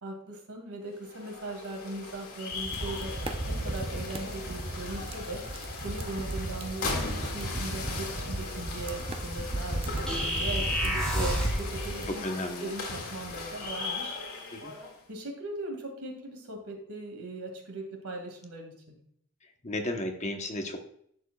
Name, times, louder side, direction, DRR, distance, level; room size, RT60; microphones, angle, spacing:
voice 1, 0.0-3.2 3.5-5.5 5.8-10.7 11.2-12.3 12.6-14.2 15.1-19.0, right 2 dB, 85° right, 2 dB, 2.1 m, -39 dB
sound 1, 0.9-15.0, left 3 dB, 75° left, 2.0 m, -38 dB
sound 2, 2.5-12.1, right 1 dB, 25° right, 0.6 m, -36 dB
sound 3, 10.1-11.7, equal, 5° left, 3.4 m, -28 dB
voice 2, 10.8-11.3 12.1-12.7 14.5-14.7 19.6-20.8, left 1 dB, 30° left, 4 dB, 0.9 m, -34 dB
10.5 x 7.1 x 2.3 m, 0.65 s
head